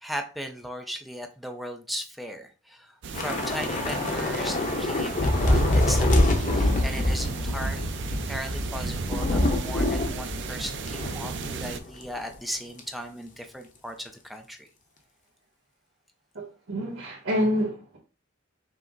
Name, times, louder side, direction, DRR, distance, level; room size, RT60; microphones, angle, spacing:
voice 1, 0.0-14.7, equal, ahead, 0.4 m, -37 dB
sound 1, 3.0-11.8, right 5 dB, 60° right, 0.5 m, -36 dB
Thunder / Rain, 3.1-11.7 12.0-12.2 12.5-12.8, left 1 dB, 40° left, 0.8 m, -25 dB
voice 2, 16.3-18.0, equal, 85° right, 1.3 m, -28 dB
5.8 x 2.0 x 3.8 m
head